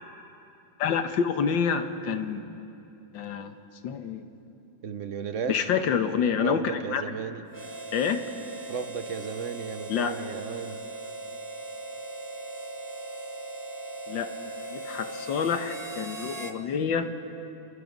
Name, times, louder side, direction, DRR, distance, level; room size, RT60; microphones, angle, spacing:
voice 1, 0.8-2.4 3.1-3.5 3.8-4.3 5.5-7.0 7.9-8.2 9.9-10.2 14.1-14.3 14.7-17.1, left 7 dB, 75° left, 8 dB, 1.8 m, -27 dB
voice 2, 4.8-5.6 6.4-7.4 8.7-10.8, right 6 dB, 55° right, 10 dB, 0.8 m, -34 dB
Harmonica, 7.5-16.6, right 2 dB, 15° right, 0.8 m, -39 dB
29.5 x 23.5 x 5.3 m, 2.8 s
omnidirectional pair, 2.1 m